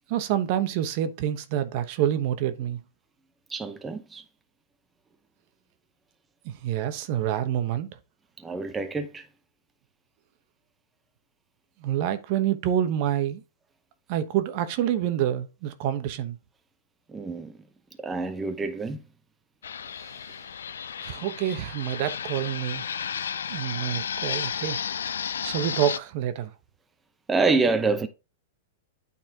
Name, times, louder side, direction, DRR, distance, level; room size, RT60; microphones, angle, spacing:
voice 1, 0.1-2.8 6.4-7.9 11.8-13.4 14.1-16.4 19.9-20.4 21.0-22.8 23.5-24.8 25.4-26.5, right 11 dB, 50° right, 1.0 m, -27 dB
voice 2, 3.5-4.2 8.4-9.3 17.1-17.6 18.0-19.0 27.3-28.1, right 4 dB, 15° right, 0.7 m, -27 dB
Fixed-wing aircraft airplane, 19.6-26.0, left 7 dB, 85° left, 0.4 m, -33 dB
9.0 x 4.2 x 3.6 m
hypercardioid pair, 125°, 0 cm